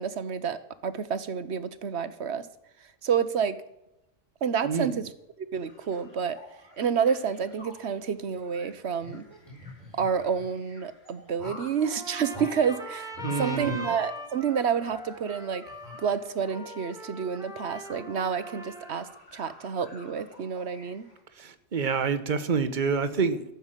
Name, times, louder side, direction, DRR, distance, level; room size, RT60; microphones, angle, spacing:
voice 1, 0.0-2.5 3.0-3.6 4.4-5.0 5.4-6.4 6.8-9.2 9.9-13.1 13.4-15.6 16.0-21.1, right 7 dB, 65° right, 1.2 m, -29 dB
voice 2, 4.6-5.0 13.2-13.9 21.3-23.4, right 5 dB, 40° right, 1.1 m, -27 dB
sound 1, 5.6-21.2, left 2 dB, 55° left, 3.4 m, -53 dB
sound 2, 9.0-10.5 11.4-11.8 12.3-12.5 13.1-14.4 14.9-15.0 15.7-16.6, left 1 dB, 25° left, 4.4 m, -45 dB
Trumpet, 11.8-19.1, equal, 5° right, 1.6 m, -41 dB
14.0 x 7.1 x 8.9 m
omnidirectional pair, 1.3 m